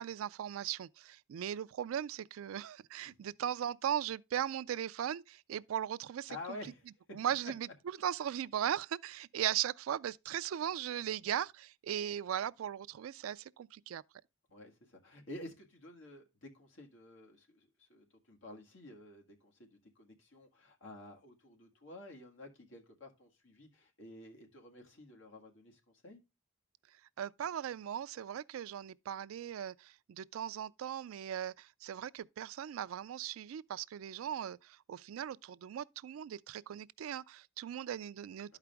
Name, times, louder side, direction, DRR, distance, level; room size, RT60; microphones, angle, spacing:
voice 1, 0.0-6.3 7.1-7.7 8.0-14.0 27.2-38.6, right 10 dB, 85° right, 0.3 m, -38 dB
voice 2, 6.3-6.9 14.5-26.2 38.5-38.6, left 2 dB, 65° left, 1.7 m, -51 dB
11.5 x 4.9 x 3.4 m
head